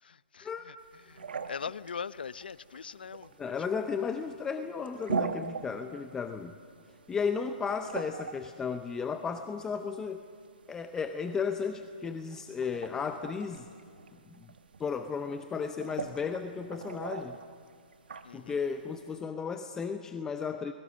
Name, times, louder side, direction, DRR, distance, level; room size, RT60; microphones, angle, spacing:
voice 1, 0.0-0.7 1.1-3.5 18.2-18.6, left 6 dB, 80° left, 17 dB, 0.7 m, -41 dB
sound 1, 0.8-19.2, right 5 dB, 80° right, 1.3 m, -42 dB
voice 2, 3.4-6.6 7.1-10.2 10.7-13.7 14.3-14.4 14.8-17.4 18.3-20.7, left 6 dB, 10° left, 8 dB, 0.7 m, -34 dB
28.5 x 21.0 x 6.3 m, 2.1 s
hypercardioid pair, 145°, 5 cm